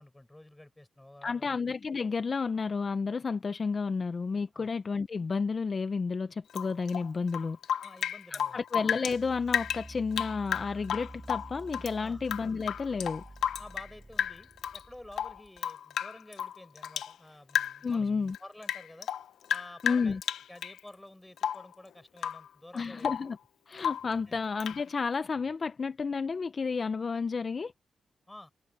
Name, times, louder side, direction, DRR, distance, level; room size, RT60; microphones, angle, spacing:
voice 1, 0.0-1.6 4.5-4.7 7.4-8.6 12.0-12.2 13.6-19.1 19.5-20.2 20.5-23.1 24.3-24.4 28.3-28.5, left 1 dB, 10° left, 6.8 m, -51 dB
voice 2, 1.2-7.6 8.3-13.2 17.8-18.4 19.8-20.2 22.7-23.4 23.7-27.7, left 5 dB, 45° left, 0.7 m, -31 dB
Rain / Drip, 6.5-9.2 9.5-11.9 12.2-13.9 14.2-14.8 15.1-17.1 17.5-18.0 18.3-20.8 21.4-21.7 22.2-22.5 22.8-23.3 23.8-24.1 24.6-24.8, left 9 dB, 90° left, 1.0 m, -33 dB
sound 1, 9.1-15.6, right 2 dB, 20° right, 3.4 m, -49 dB
cardioid pair, 80°, 0 cm